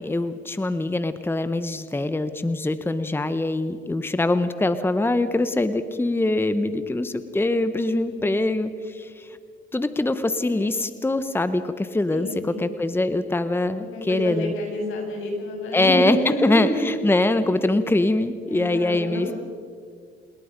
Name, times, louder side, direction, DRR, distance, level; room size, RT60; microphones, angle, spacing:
voice 1, 0.0-9.4 9.7-12.3 12.6-14.5 15.7-19.3, left 2 dB, 10° left, 11 dB, 1.0 m, -23 dB
voice 2, 7.8-8.4 12.1-12.7 13.8-16.9 18.5-19.3, equal, 80° left, 1 dB, 6.8 m, -29 dB
27.5 x 21.0 x 5.3 m, 2.2 s
cardioid pair, 90°, 20 cm